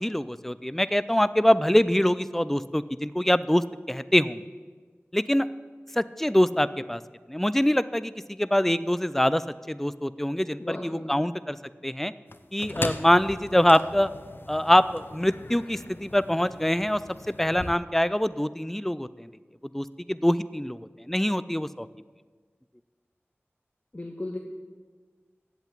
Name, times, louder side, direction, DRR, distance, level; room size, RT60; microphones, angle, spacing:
voice 1, 0.0-4.5 5.1-5.5 6.0-7.0 7.3-9.4 9.7-11.6 11.8-12.1 12.5-14.1 14.5-17.0 17.4-19.3 19.7-21.9, left 1 dB, 5° left, 15 dB, 0.4 m, -24 dB
voice 2, 10.6-11.2 23.9-24.4, left 1 dB, 30° left, 2 dB, 0.9 m, -35 dB
sound 1, 12.3-17.8, left 2 dB, 50° left, 0.6 m, -39 dB
8.1 x 7.9 x 8.8 m, 1.5 s
wide cardioid pair, 55°, 5 cm